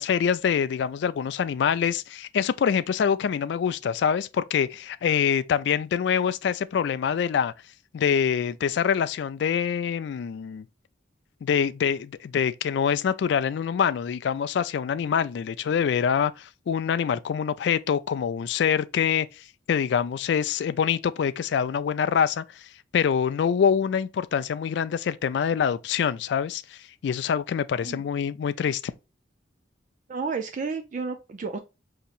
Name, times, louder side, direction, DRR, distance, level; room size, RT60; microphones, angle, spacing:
voice 1, 0.0-7.5 7.9-10.6 11.4-19.3 19.7-22.6 22.9-28.9, left 7 dB, 65° left, 0.3 m, -25 dB
voice 2, 30.1-31.6, right 4 dB, 45° right, 0.3 m, -31 dB
5.3 x 2.9 x 2.4 m
head